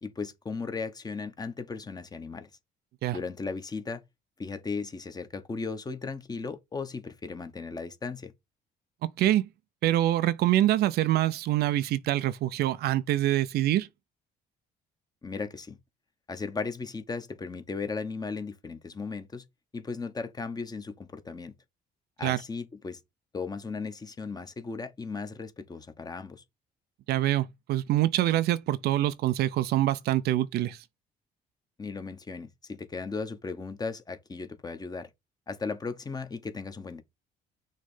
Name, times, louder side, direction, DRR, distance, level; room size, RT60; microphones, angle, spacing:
voice 1, 0.0-2.5 3.1-4.0 4.4-8.3 15.2-15.8 16.3-19.4 19.7-21.5 22.2-23.0 23.3-26.4 31.8-35.1 35.5-37.0, left 4 dB, 25° left, 1.1 m, -36 dB
voice 2, 9.0-9.5 9.8-13.9 22.2-22.4 27.1-30.8, right 14 dB, 70° right, 0.6 m, -25 dB
6.4 x 3.2 x 5.5 m
cardioid pair, 110°, 17 cm